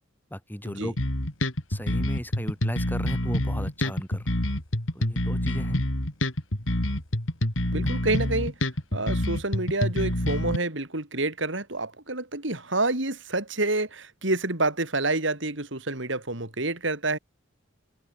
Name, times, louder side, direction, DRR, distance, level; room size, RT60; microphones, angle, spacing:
voice 1, 0.3-1.0 1.7-4.3 5.0-5.8, equal, 10° left, 7.9 m, -34 dB
sound 1, 1.0-10.6, left 1 dB, 75° left, 4.0 m, -27 dB
voice 2, 7.7-8.5 8.9-17.2, right 2 dB, 65° right, 4.0 m, -28 dB
head